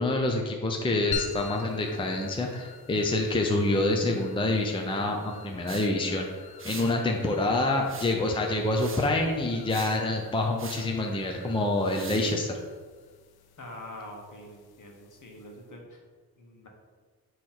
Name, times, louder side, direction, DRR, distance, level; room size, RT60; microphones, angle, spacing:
voice 1, 0.0-6.3 6.6-12.6, left 2 dB, 15° left, 2 dB, 0.6 m, -27 dB
sound 1, 1.1-15.8, left 6 dB, 80° left, 0.6 m, -45 dB
sound 2, 5.7-5.9 6.6-7.0 7.8-8.3 8.7-9.1 9.7-10.0 10.6-10.9 11.8-12.4, right 6 dB, 35° right, 0.5 m, -42 dB
voice 2, 13.6-16.0 16.4-16.7, left 1 dB, 55° left, 1 dB, 1.3 m, -45 dB
7.6 x 3.1 x 4.4 m, 1.5 s
wide cardioid pair, 85°, 37 cm